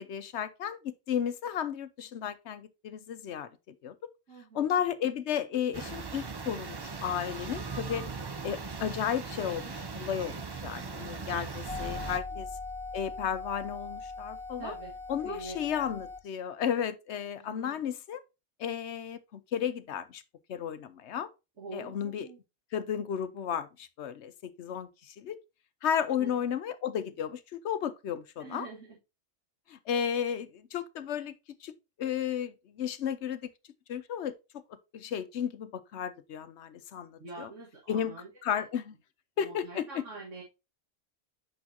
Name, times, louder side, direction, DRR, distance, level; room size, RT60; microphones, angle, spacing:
voice 1, 0.0-3.5 3.8-3.9 4.5-8.1 8.4-10.4 10.6-12.5 12.9-14.7 15.1-18.2 18.6-20.2 20.5-21.3 21.7-22.3 22.7-24.3 24.6-25.4 25.8-28.7 29.7-31.3 31.6-31.7 32.0-33.5 33.9-34.3 34.9-37.5 37.9-38.1 38.4-38.9 39.4-40.0, left 8 dB, 70° left, 1.0 m, -33 dB
voice 2, 4.3-4.7 8.3-8.8 12.1-12.4 14.6-14.9 15.2-15.8 17.4-17.8 21.6-22.4 26.2-26.4 28.4-29.0 37.2-38.6 39.4-40.4, right 3 dB, 85° right, 2.3 m, -45 dB
sound 1, 5.7-12.2, right 4 dB, 30° right, 0.5 m, -39 dB
sound 2, 11.7-16.2, left 3 dB, 5° left, 1.8 m, -40 dB
8.4 x 6.1 x 2.8 m
omnidirectional pair, 1.2 m